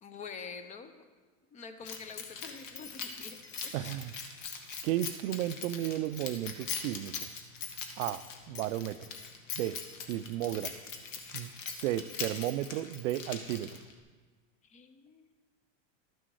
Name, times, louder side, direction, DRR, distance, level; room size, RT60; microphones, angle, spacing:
voice 1, 0.0-1.0 1.5-3.4 3.6-4.0 11.5-11.7 14.6-15.3, left 5 dB, 20° left, 9 dB, 0.6 m, -46 dB
Keys jangling, 1.8-14.0, left 6 dB, 70° left, 1.4 m, -41 dB
voice 2, 3.7-4.1 4.8-7.3 8.0-9.1 9.5-9.8 10.1-10.7 11.3-11.5 11.8-13.8, right 13 dB, 80° right, 14 dB, 0.5 m, -33 dB
12.0 x 6.2 x 4.7 m, 1.4 s
supercardioid pair, 135°, 39 cm